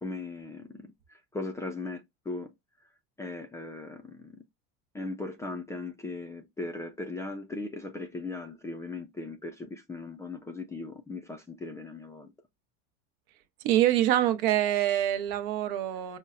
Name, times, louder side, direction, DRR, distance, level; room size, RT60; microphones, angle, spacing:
voice 1, 0.0-2.5 3.2-4.4 4.9-12.3, left 3 dB, 10° left, 0.4 m, -38 dB
voice 2, 13.6-16.2, right 12 dB, 65° right, 0.8 m, -25 dB
5.4 x 2.1 x 2.4 m
supercardioid pair, 145°, 36 cm